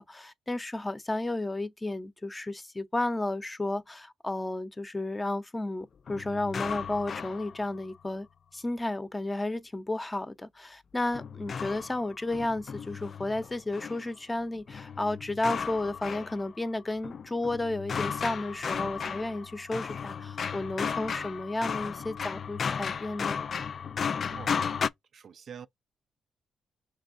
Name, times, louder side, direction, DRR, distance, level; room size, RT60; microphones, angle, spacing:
voice 1, 0.0-8.3 8.5-23.4, left 2 dB, 20° left, 0.6 m, -32 dB
sound 1, 6.1-8.0 11.1-14.1 14.7-16.7 17.0-24.9, left 6 dB, 50° left, 0.3 m, -35 dB
voice 2, 24.3-24.6 25.1-25.7, right 7 dB, 55° right, 0.4 m, -45 dB
5.9 x 3.2 x 2.6 m
cardioid pair, 75°, 0 cm